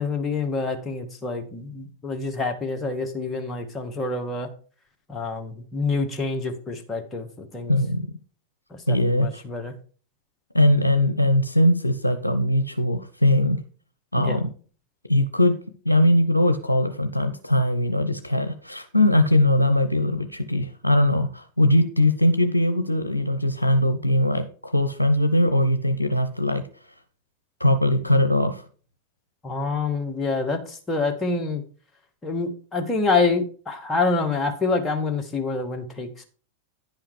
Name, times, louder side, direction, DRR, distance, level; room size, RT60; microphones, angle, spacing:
voice 1, 0.0-4.5 5.1-7.7 8.7-9.7 14.1-14.4 29.4-31.6 32.2-36.2, left 3 dB, 15° left, 4 dB, 1.7 m, -27 dB
voice 2, 7.7-8.1 8.9-9.4 10.5-13.6 14.1-14.5 15.1-15.6 15.8-26.6 27.6-28.6, left 1 dB, 85° left, 8 dB, 0.6 m, -21 dB
10.5 x 5.6 x 4.8 m, 0.41 s
figure-of-eight pair, 90°, 0 cm